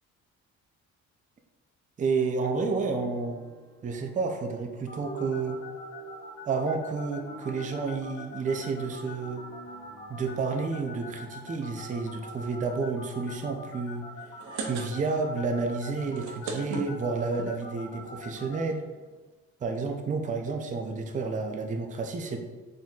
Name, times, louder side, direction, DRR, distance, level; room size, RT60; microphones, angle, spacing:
voice 1, 2.0-3.4 3.8-5.6 6.5-9.4 10.1-14.0 14.6-18.8 19.6-22.4, right 4 dB, 25° right, 3 dB, 0.4 m, -30 dB
sound 1, 2.7-12.8, right 3 dB, ahead, 1.2 m, -48 dB
sound 2, 4.9-18.6, left 3 dB, 70° left, 1.2 m, -44 dB
sound 3, 14.2-15.3 15.6-15.7 16.0-17.5 18.2-18.3 18.5-18.6 18.8-19.0, right 4 dB, 75° right, 0.7 m, -36 dB
4.0 x 3.8 x 2.3 m, 1.3 s
cardioid pair, 90°, 30 cm